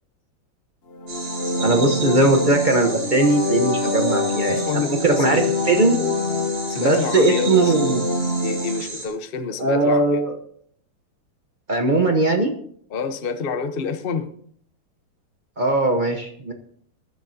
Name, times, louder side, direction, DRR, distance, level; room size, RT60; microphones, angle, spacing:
sound 1, 0.9-8.8, left 2 dB, 45° left, 0.8 m, -25 dB
sound 2, 1.1-9.1, right 3 dB, 65° right, 3.5 m, -34 dB
voice 1, 1.6-6.0 6.8-8.1 9.6-10.3 11.7-12.5 15.6-16.5, right 2 dB, 45° right, 4 dB, 0.6 m, -19 dB
voice 2, 4.5-5.4 6.7-7.7 8.4-10.2 12.9-14.3, left 6 dB, 75° left, 8 dB, 0.5 m, -28 dB
21.5 x 10.5 x 2.7 m, 0.62 s
omnidirectional pair, 2.4 m